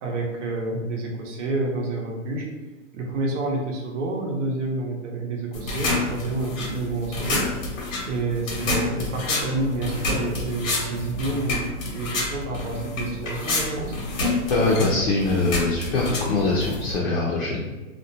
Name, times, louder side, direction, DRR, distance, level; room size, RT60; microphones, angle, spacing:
voice 1, 0.0-2.5 2.9-7.7 8.0-14.0, right 2 dB, 65° right, 0 dB, 0.8 m, -29 dB
sound 1, 5.5-17.0, left 2 dB, 90° left, 1.0 m, -28 dB
voice 2, 14.5-17.6, left 3 dB, 55° left, -5 dB, 0.6 m, -23 dB
2.4 x 2.1 x 2.7 m, 1.2 s
hypercardioid pair, 150°, 39 cm